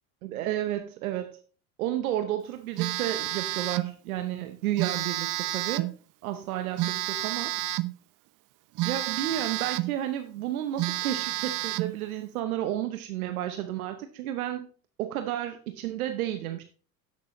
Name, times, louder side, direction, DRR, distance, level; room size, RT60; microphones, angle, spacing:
voice 1, 0.2-1.4 1.8-5.9 6.2-7.5 8.8-14.7 15.0-16.6, right 12 dB, 85° right, 8 dB, 0.8 m, -32 dB
Telephone, 2.8-3.9 4.8-6.0 6.8-8.0 8.8-10.0 10.4-10.5 10.8-12.0, right 18 dB, 50° right, 0.6 m, -30 dB
11.0 x 6.9 x 3.0 m, 0.41 s
hypercardioid pair, 80°, 42 cm